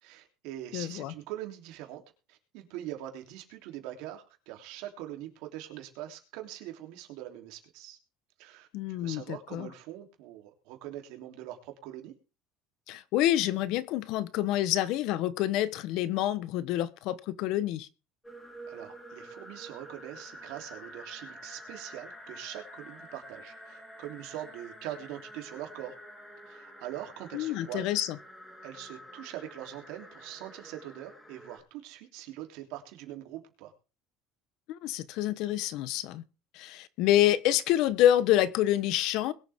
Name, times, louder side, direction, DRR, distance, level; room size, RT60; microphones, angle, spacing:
voice 1, 0.0-2.0 2.3-8.0 8.4-12.1 18.7-25.9 26.5-27.9 28.6-33.7, right 13 dB, 75° right, 3.2 m, -43 dB
voice 2, 0.7-1.1 8.7-9.7 12.9-17.9 27.3-28.2 34.7-36.2 36.5-39.3, left 13 dB, 65° left, 1.0 m, -27 dB
sound 1, 18.2-31.6, equal, 10° left, 3.7 m, -48 dB
21.5 x 7.8 x 3.6 m
cardioid pair, 125°, 0 cm